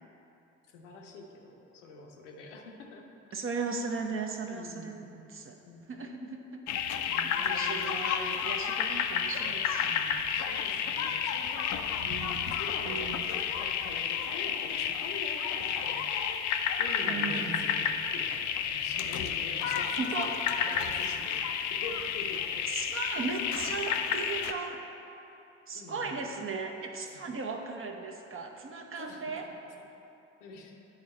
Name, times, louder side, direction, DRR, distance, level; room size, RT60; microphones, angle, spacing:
voice 1, 0.7-3.1 4.4-5.0 5.6-5.8 7.1-8.0 10.1-11.9 12.6-13.1 13.6-16.1 16.8-21.4 21.7-22.7 23.9-24.0 25.7-26.3 27.0-27.3 29.0-29.2 30.4-30.7, left 3 dB, 75° left, 1 dB, 0.9 m, -45 dB
voice 2, 3.3-5.5 5.9-6.6 7.1-10.2 12.0-12.6 12.8-13.3 17.1-17.8 20.0-20.3 22.7-24.8 25.7-29.5, right 4 dB, 35° right, 3 dB, 0.8 m, -37 dB
sound 1, 6.7-24.5, left 8 dB, 50° left, 0.6 m, -31 dB
10.0 x 3.8 x 4.2 m, 2.8 s
hypercardioid pair, 50°, 36 cm